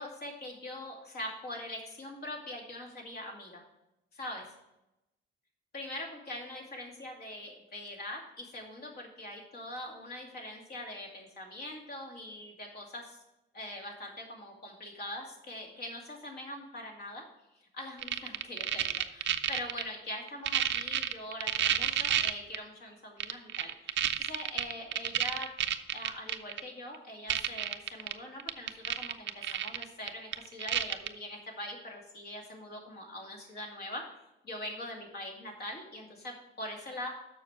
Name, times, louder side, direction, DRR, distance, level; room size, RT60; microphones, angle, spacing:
voice 1, 0.0-3.6 4.1-4.5 5.7-13.2 13.5-17.2 17.5-25.5 25.9-34.0 34.4-37.1, left 1 dB, 55° left, 0 dB, 2.5 m, -43 dB
sound 1, 18.0-19.8 20.3-22.6 23.2-26.6 26.9-27.0 27.3-28.1 28.4-31.1 31.7-31.8, right 11 dB, 65° right, 0.6 m, -30 dB
7.0 x 6.3 x 5.8 m, 0.91 s
cardioid pair, 90°, 20 cm